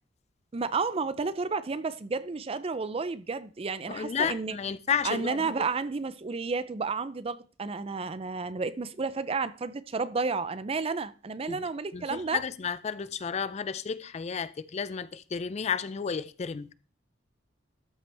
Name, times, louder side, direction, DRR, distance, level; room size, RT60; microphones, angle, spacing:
voice 1, 0.5-4.6 5.0-12.4, right 4 dB, 30° right, 0.4 m, -31 dB
voice 2, 3.9-5.5 11.5-11.7 11.9-16.7, left 6 dB, 35° left, 0.4 m, -32 dB
13.0 x 5.7 x 3.3 m
head